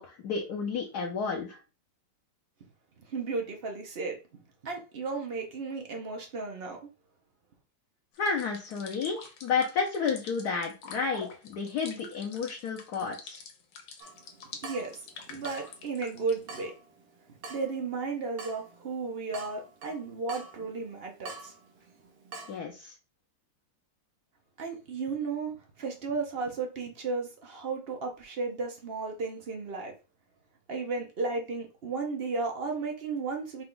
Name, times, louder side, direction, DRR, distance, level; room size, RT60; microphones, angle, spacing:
voice 1, 0.0-1.6 8.2-13.4 22.5-22.9, left 5 dB, 65° left, 0 dB, 1.1 m, -31 dB
voice 2, 3.0-4.2 4.6-6.8 14.6-15.0 15.3-16.7 17.5-21.5 24.6-29.9 30.7-33.6, right 4 dB, 60° right, 2 dB, 0.6 m, -34 dB
sound 1, 8.1-16.6, left 5 dB, 80° left, 1.6 m, -47 dB
Water tap faucet / Drip, 14.0-22.6, right 3 dB, 85° right, 1.7 m, -47 dB
4.8 x 2.3 x 3.8 m, 0.31 s
omnidirectional pair, 2.2 m